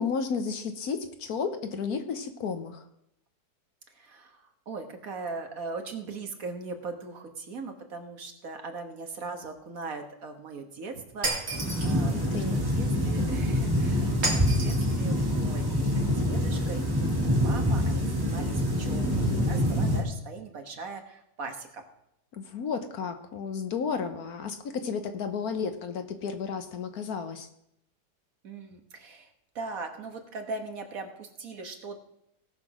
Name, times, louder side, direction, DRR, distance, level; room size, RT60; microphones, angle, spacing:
voice 1, 0.0-2.8 12.1-12.6 22.3-27.5, left 5 dB, 65° left, 8 dB, 1.5 m, -32 dB
voice 2, 3.9-21.8 28.4-29.3 29.6-32.0, right 3 dB, 60° right, 5 dB, 1.8 m, -40 dB
Shatter, 11.2-12.0 14.2-15.0, right 2 dB, 40° right, 2.6 m, -31 dB
sound 1, 11.5-20.0, equal, 15° right, 2.1 m, -26 dB
17.5 x 6.0 x 6.0 m, 0.78 s
omnidirectional pair, 1.7 m